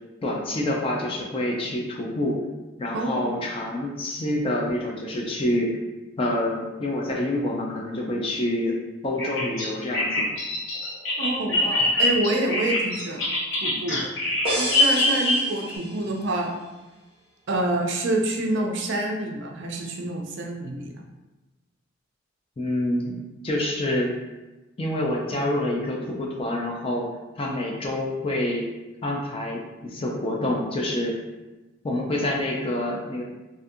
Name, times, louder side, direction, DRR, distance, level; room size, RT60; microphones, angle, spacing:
voice 1, 0.2-2.4 2.8-5.7 6.2-8.8 9.0-10.3 22.6-23.1 23.4-24.1 24.8-27.1 27.4-28.7 29.0-31.2 31.8-33.2, left 1 dB, 25° left, -1 dB, 0.3 m, -27 dB
voice 2, 2.9-3.4 11.2-13.2 13.6-14.1 14.6-16.5 17.5-20.9, right 1 dB, 60° right, 1 dB, 0.4 m, -27 dB
Bird vocalization bird call bird song, 9.2-15.8, left 1 dB, 65° left, 0.6 m, -24 dB
sound 1, 14.4-16.2, right 1 dB, 30° right, 0.9 m, -30 dB
2.4 x 2.4 x 2.6 m, 1.1 s
head